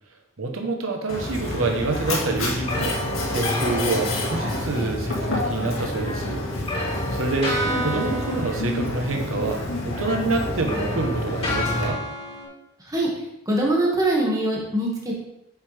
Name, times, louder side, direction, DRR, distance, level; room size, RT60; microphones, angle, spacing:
voice 1, 0.4-12.0, right 3 dB, 90° right, 3 dB, 1.1 m, -27 dB
Mechanisms, 1.1-11.9, left 1 dB, 90° left, 2.0 m, -28 dB
sound 1, 1.9-5.0 5.9-9.6 9.9-12.5, left 1 dB, 30° left, 3.3 m, -31 dB
voice 2, 13.5-15.1, right 1 dB, 15° right, -3 dB, 1.8 m, -22 dB
7.9 x 7.1 x 3.3 m, 0.83 s
head